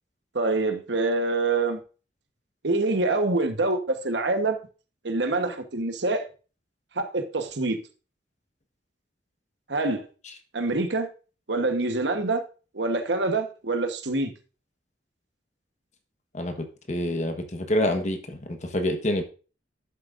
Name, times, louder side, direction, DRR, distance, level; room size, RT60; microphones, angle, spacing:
voice 1, 0.3-1.8 2.6-4.6 5.0-6.3 6.9-7.8 9.7-10.0 10.5-11.1 11.5-12.4 12.7-14.3, right 2 dB, 70° right, 7 dB, 1.2 m, -25 dB
voice 2, 16.3-19.2, left 1 dB, 40° left, 5 dB, 1.2 m, -27 dB
12.0 x 7.4 x 2.5 m, 0.36 s
head